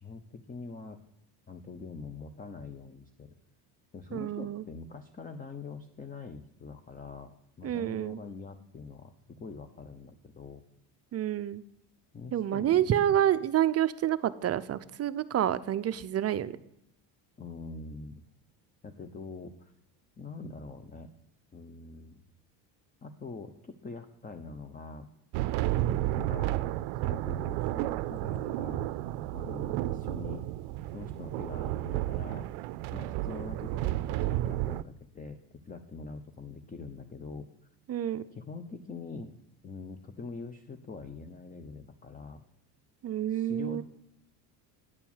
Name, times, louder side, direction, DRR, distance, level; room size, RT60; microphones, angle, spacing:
voice 1, 0.0-1.0 1.5-3.3 3.9-10.6 12.1-13.0 17.4-18.2 18.8-19.7 20.2-21.1 21.5-22.2 23.0-25.1 25.8-26.6 27.0-28.9 29.3-30.5 30.9-32.5 32.9-37.5 38.3-39.3 39.6-42.4 43.3-43.8, left 4 dB, 20° left, 8 dB, 0.7 m, -44 dB
voice 2, 4.1-4.6 7.6-8.2 11.1-11.6 12.3-16.6 37.9-38.2 43.0-43.8, right 11 dB, 35° right, 14 dB, 0.5 m, -28 dB
sound 1, 25.3-34.8, right 15 dB, 80° right, 0.5 m, -32 dB
9.8 x 4.5 x 7.2 m, 0.82 s
supercardioid pair, 100°, 47 cm